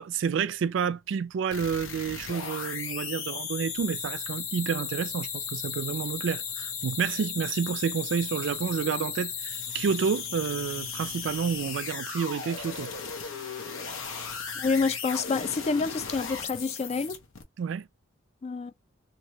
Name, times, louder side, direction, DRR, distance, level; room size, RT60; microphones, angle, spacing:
voice 1, 0.0-13.0 17.6-17.9, right 6 dB, 65° right, 0.3 m, -30 dB
sound 1, 1.5-17.4, left 6 dB, 90° left, 0.8 m, -36 dB
voice 2, 14.6-17.2 18.4-18.7, left 4 dB, 35° left, 0.3 m, -28 dB
3.1 x 2.6 x 2.7 m
head